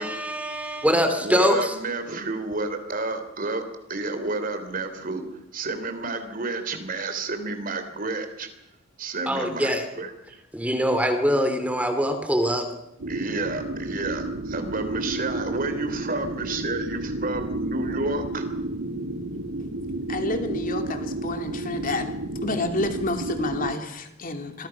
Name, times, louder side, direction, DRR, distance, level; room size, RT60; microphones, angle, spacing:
voice 1, 0.0-1.7 9.3-9.8 10.5-12.7, equal, 5° right, 7 dB, 2.6 m, -23 dB
voice 2, 1.2-3.6 3.9-8.5 9.0-10.4 13.1-18.5, right 3 dB, 45° right, 8 dB, 3.5 m, -30 dB
sound 1, 13.0-23.7, right 2 dB, 85° right, 2.2 m, -31 dB
voice 3, 20.1-22.1 22.4-24.7, left 2 dB, 40° left, 5 dB, 3.0 m, -29 dB
28.0 x 22.5 x 6.0 m, 0.84 s
head